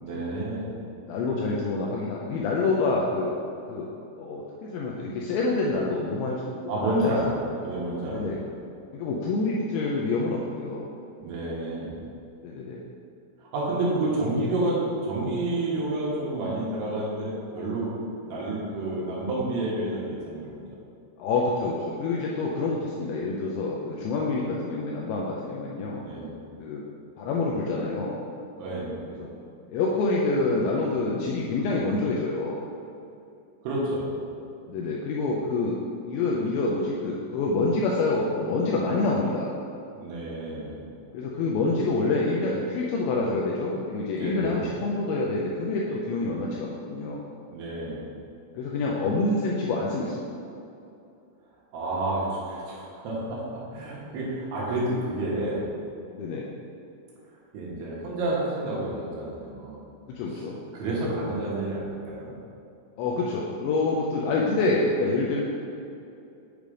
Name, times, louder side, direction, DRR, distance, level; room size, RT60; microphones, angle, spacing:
voice 1, 0.0-0.7 6.7-8.4 11.2-12.0 13.4-17.9 18.2-20.6 26.0-26.3 28.6-29.1 33.6-34.1 40.0-40.8 44.1-44.7 46.2-46.4 47.5-48.0 51.7-55.6 57.5-59.9 60.3-60.5 60.7-62.3, right 1 dB, 75° right, -6 dB, 3.5 m, -29 dB
voice 2, 1.1-3.3 3.7-3.9 4.2-7.1 8.1-8.4 8.9-10.9 12.4-12.8 21.2-26.1 26.6-26.8 27.2-28.2 29.2-29.3 29.7-32.6 34.7-35.8 36.0-39.5 41.1-47.2 48.6-50.3 56.1-56.5 60.1-60.6 63.0-65.4, left 3 dB, 85° left, -3 dB, 2.6 m, -27 dB
8.4 x 3.2 x 5.0 m, 2.7 s
omnidirectional pair, 5.8 m